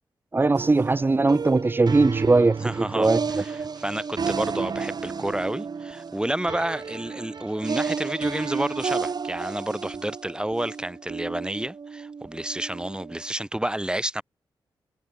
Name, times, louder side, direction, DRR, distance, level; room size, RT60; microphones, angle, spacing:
voice 1, 0.3-3.2, right 3 dB, 25° right, 0.7 m, -20 dB
sound 1, 0.5-13.2, right 5 dB, 55° right, 3.6 m, -32 dB
voice 2, 2.6-14.2, right 1 dB, 10° right, 4.7 m, -30 dB
cardioid pair, 65°, 9 cm